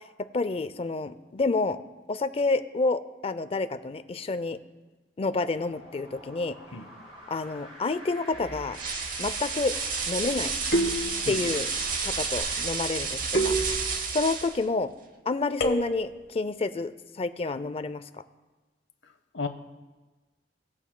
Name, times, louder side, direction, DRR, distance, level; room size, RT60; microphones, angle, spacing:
voice 1, 0.3-1.8 2.1-4.6 5.2-6.6 7.3-8.8 9.2-9.7 10.1-10.5 11.3-11.7 12.0-13.5 14.1-14.9 15.3-18.0, left 3 dB, 30° left, 12 dB, 0.4 m, -29 dB
sound 1, 5.5-12.4, equal, 30° right, 2.9 m, -45 dB
sound 2, 8.3-8.9 10.7-11.7 13.3-14.3 15.6-16.3, right 2 dB, 65° left, 1.2 m, -29 dB
sound 3, 8.7-14.6, right 5 dB, 45° right, 0.8 m, -31 dB
voice 2, 11.2-11.6 19.3-19.5, left 3 dB, 90° left, 7 dB, 0.8 m, -33 dB
19.5 x 7.2 x 2.2 m, 1.2 s
head